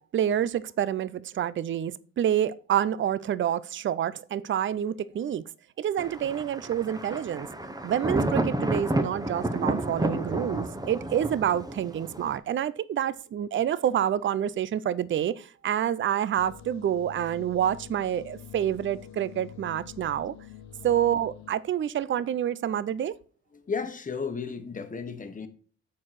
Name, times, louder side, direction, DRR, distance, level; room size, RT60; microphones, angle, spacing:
voice 1, 0.1-5.4 5.8-7.5 7.8-20.3 20.8-23.1, right 10 dB, 40° right, 0.5 m, -28 dB
Thunder, 6.0-12.4, right 1 dB, 15° right, 1.0 m, -30 dB
sound 1, 16.4-21.5, left 10 dB, 65° left, 0.9 m, -46 dB
voice 2, 23.5-25.5, left 5 dB, 25° left, 1.2 m, -33 dB
7.3 x 4.6 x 5.8 m
cardioid pair, 90°, 30 cm